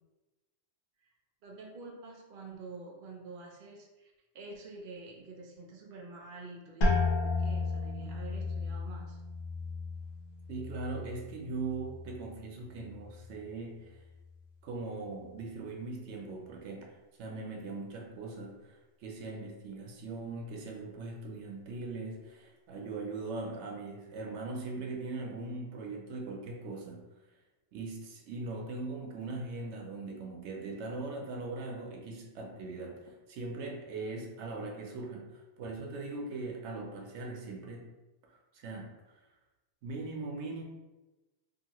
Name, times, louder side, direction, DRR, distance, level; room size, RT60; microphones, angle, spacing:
voice 1, 1.4-9.2, right 3 dB, 60° right, 0 dB, 0.7 m, -48 dB
sound 1, 6.8-12.4 12.8-13.5 14.0-14.4, left 3 dB, 55° left, 0.8 m, -34 dB
voice 2, 10.5-14.0 14.6-27.0 27.7-37.9 38.3-39.2 39.8-40.6, right 3 dB, 85° right, 1 dB, 0.9 m, -40 dB
2.7 x 2.7 x 2.9 m, 1.1 s
omnidirectional pair, 1.1 m